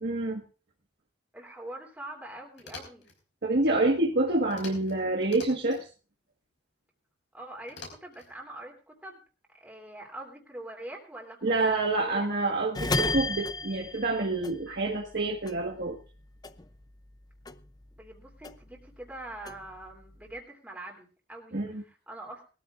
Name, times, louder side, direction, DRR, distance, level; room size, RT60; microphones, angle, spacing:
voice 1, 0.0-0.4 3.4-5.8 11.4-16.0 21.5-21.8, right 2 dB, 60° right, 0 dB, 1.6 m, -27 dB
voice 2, 1.3-3.1 7.3-9.2 9.5-12.3 18.0-22.5, right 1 dB, 10° right, -1 dB, 3.0 m, -44 dB
sound 1, 2.6-3.2 4.5-4.9 5.2-5.8 7.7-8.3, left 3 dB, 70° left, 4.7 m, -45 dB
sound 2, 12.8-15.2 15.5-17.2 17.5-18.9 19.2-20.4, left 2 dB, 20° left, 0.5 m, -33 dB
20.5 x 13.5 x 2.5 m, 0.35 s
head